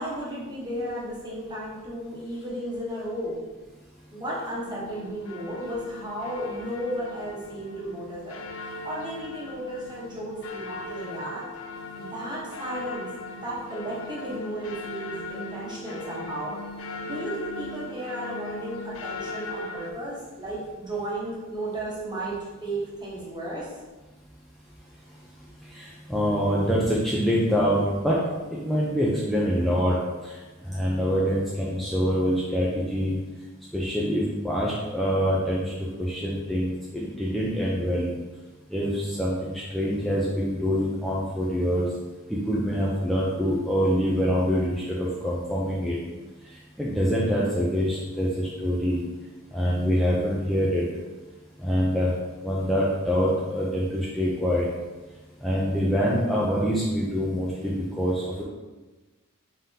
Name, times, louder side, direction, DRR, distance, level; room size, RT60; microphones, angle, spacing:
voice 1, 0.0-3.3 4.1-11.4 12.0-16.5 17.0-22.3 22.6-23.7, right 1 dB, 20° right, -6 dB, 1.0 m, -34 dB
sound 1, 4.5-19.9, left 2 dB, 65° left, 0.5 m, -39 dB
voice 2, 25.6-28.2 28.5-33.2 33.7-38.1 38.7-41.9 42.3-46.0 46.8-49.0 49.5-50.8 51.6-52.1 52.4-54.7 55.4-58.4, equal, ahead, -6 dB, 0.4 m, -25 dB
3.7 x 3.7 x 2.7 m, 1.2 s
head